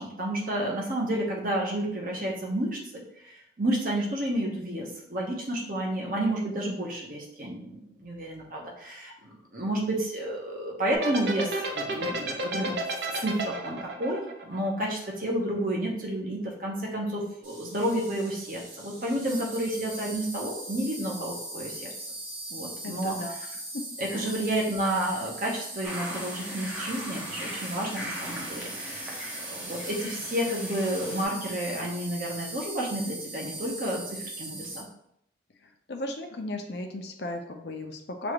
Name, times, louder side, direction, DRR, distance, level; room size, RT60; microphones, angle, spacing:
voice 1, 0.0-7.7 8.0-12.8 13.1-21.9 22.5-23.2 24.0-29.2 29.5-34.9, right 1 dB, 45° right, -2 dB, 1.0 m, -31 dB
sound 1, 10.9-15.3, right 2 dB, 65° right, 0.6 m, -31 dB
Insect, 17.4-34.8, right 1 dB, 85° right, 1.7 m, -40 dB
voice 2, 22.8-23.3 23.7-23.8 24.1-24.3 35.9-38.3, left 1 dB, 60° left, 4 dB, 0.6 m, -35 dB
sound 2, 25.8-31.2, equal, 10° right, 0.6 m, -39 dB
6.1 x 2.5 x 3.0 m, 0.73 s
head